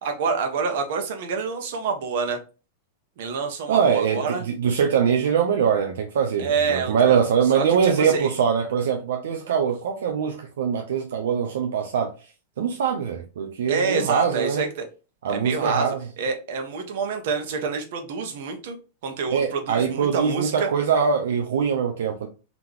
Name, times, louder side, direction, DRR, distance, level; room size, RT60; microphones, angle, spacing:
voice 1, 0.0-2.4 3.2-4.4 6.4-7.2 7.5-8.3 13.7-14.9 15.3-18.8 19.0-20.7, right 5 dB, 65° right, 1.1 m, -27 dB
voice 2, 3.7-12.1 12.6-14.6 15.2-16.0 19.3-22.3, right 7 dB, 85° right, 0.6 m, -23 dB
4.1 x 2.9 x 3.4 m
supercardioid pair, 135°, 0 cm